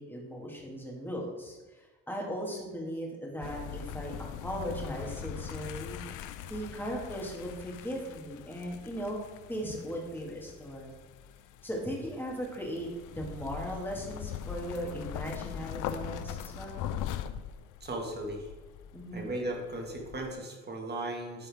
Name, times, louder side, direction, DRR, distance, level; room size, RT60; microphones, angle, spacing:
voice 1, 0.0-4.1 4.4-6.2 6.5-9.2 9.5-10.9 11.6-12.9 13.1-16.9 18.9-19.3, equal, 5° left, -2 dB, 2.1 m, -38 dB
sound 1, 3.4-20.4, left 9 dB, 90° left, 0.5 m, -41 dB
voice 2, 17.8-18.5 19.1-21.5, right 1 dB, 35° right, 1 dB, 1.9 m, -36 dB
12.0 x 4.3 x 3.6 m, 1.2 s
cardioid pair, 90°, 30 cm